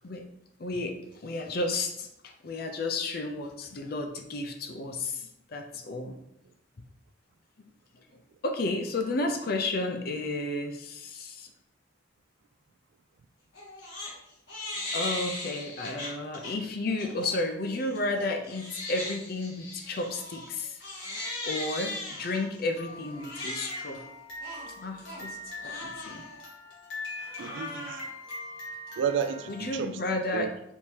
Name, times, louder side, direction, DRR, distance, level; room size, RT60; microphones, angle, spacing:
voice 1, 0.6-6.1 8.4-11.5 14.9-20.8 21.5-24.0 24.8-25.4 25.6-26.2 29.5-30.5, left 2 dB, 50° left, 0.5 m, -32 dB
Crying sobbing, 13.5-14.1 14.5-16.5 17.0-17.3 17.8-29.8, left 2 dB, 70° left, 1.6 m, -39 dB
voice 2, 27.4-28.0 29.0-30.5, right 7 dB, 70° right, 0.3 m, -32 dB
4.5 x 3.5 x 2.8 m
head